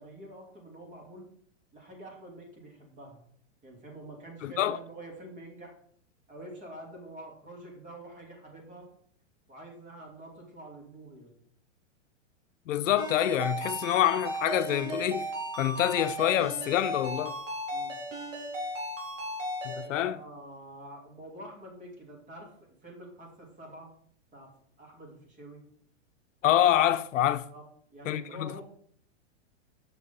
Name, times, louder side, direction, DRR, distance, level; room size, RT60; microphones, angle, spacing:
voice 1, 0.0-1.3 1.7-3.2 3.6-5.8 6.3-8.9 9.5-11.4 17.0-17.4 17.7-18.0 19.6-23.9 24.3-25.6 27.5-27.6 27.9-28.6, right 1 dB, 20° right, 2.7 m, -47 dB
voice 2, 4.4-4.8 12.7-15.3 15.6-17.3 19.6-20.2 26.4-27.4 28.1-28.5, left 12 dB, 80° left, 0.7 m, -26 dB
Ringtone, 13.0-19.8, right 1 dB, 85° right, 3.9 m, -35 dB
6.8 x 6.3 x 5.3 m
hypercardioid pair, 145°, 38 cm